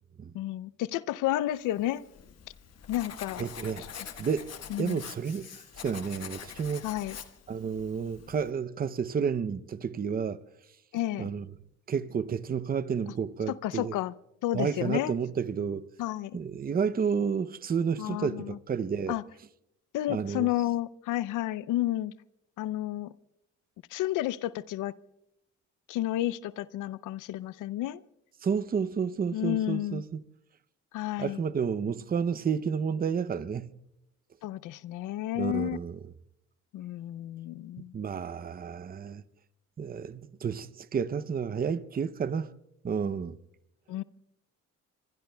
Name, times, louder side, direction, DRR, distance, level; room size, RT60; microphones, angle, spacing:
voice 1, 0.3-2.1 2.9-3.5 4.7-5.0 6.8-7.2 10.9-11.3 13.5-14.1 14.4-15.1 16.0-16.4 18.0-18.6 19.1-19.2 19.9-22.1 22.6-23.1 23.9-24.9 25.9-28.0 29.3-30.0 30.9-31.4 34.4-35.8 36.7-37.9 43.9-44.0, left 14 dB, 85° left, 0.5 m, -31 dB
Writing, 1.8-8.5, left 8 dB, 55° left, 1.3 m, -45 dB
voice 2, 3.4-3.9 4.2-4.5 4.8-6.8 7.5-10.4 11.2-11.4 11.9-13.9 14.5-15.8 16.3-19.2 20.1-20.5 28.4-30.2 31.2-33.7 35.4-36.0 37.9-39.2 39.8-42.5 42.8-43.4, right 6 dB, 30° right, 0.6 m, -31 dB
26.5 x 24.0 x 2.2 m
cardioid pair, 90°, 30 cm